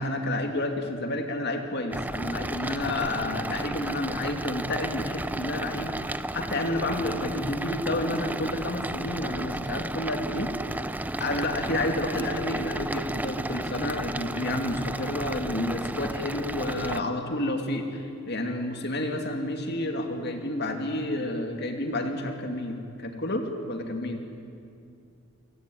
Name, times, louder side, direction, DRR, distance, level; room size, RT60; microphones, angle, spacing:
voice 1, 0.0-10.5 11.2-17.9 18.3-23.4 23.7-24.2, left 1 dB, 45° left, 5 dB, 2.6 m, -30 dB
sound 1, 1.9-17.0, right 1 dB, 5° right, 0.5 m, -33 dB
28.5 x 17.5 x 9.4 m, 2.5 s
head